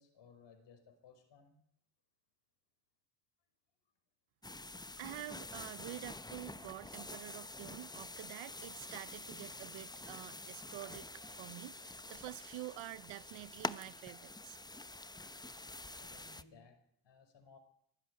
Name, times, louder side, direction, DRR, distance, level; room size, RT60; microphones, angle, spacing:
voice 1, 0.0-1.6 15.9-17.6, left 5 dB, 65° left, 5.7 m, -61 dB
sound 1, 4.4-16.4, left 2 dB, 10° left, 0.9 m, -47 dB
voice 2, 5.0-11.1 11.4-14.6, right 17 dB, 85° right, 0.9 m, -48 dB
23.5 x 12.5 x 9.7 m
cardioid pair, 75°, 46 cm